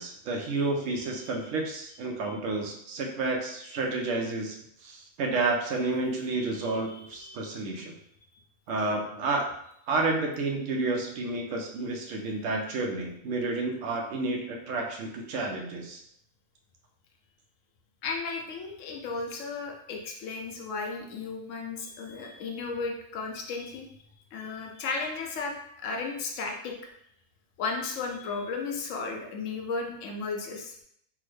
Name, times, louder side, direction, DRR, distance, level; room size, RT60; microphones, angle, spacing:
voice 1, 0.0-4.6 4.8-8.0 8.7-9.5 9.9-16.0, right 3 dB, 70° right, 1 dB, 1.0 m, -30 dB
voice 2, 6.9-7.5 18.0-23.9 24.3-26.8 27.6-30.7, left 4 dB, 75° left, 2 dB, 0.9 m, -34 dB
3.5 x 2.1 x 3.2 m, 0.72 s
omnidirectional pair, 1.4 m